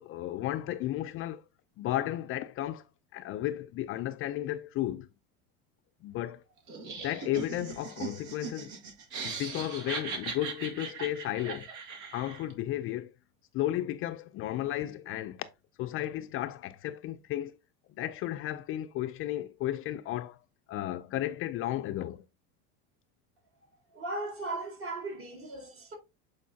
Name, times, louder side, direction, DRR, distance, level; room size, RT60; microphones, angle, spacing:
voice 1, 0.0-1.4 1.8-2.9 3.1-5.1 6.0-6.4 7.0-8.7 9.2-11.7 12.1-13.1 13.5-15.5 15.8-17.6 18.0-20.4 20.7-22.2, left 13 dB, 40° left, 0.4 m, -34 dB
Laughter, 6.7-12.5, right 5 dB, 70° right, 2.3 m, -40 dB
voice 2, 23.9-25.9, right 2 dB, 40° right, 3.9 m, -37 dB
8.4 x 4.6 x 2.7 m
cardioid pair, 140°, 33 cm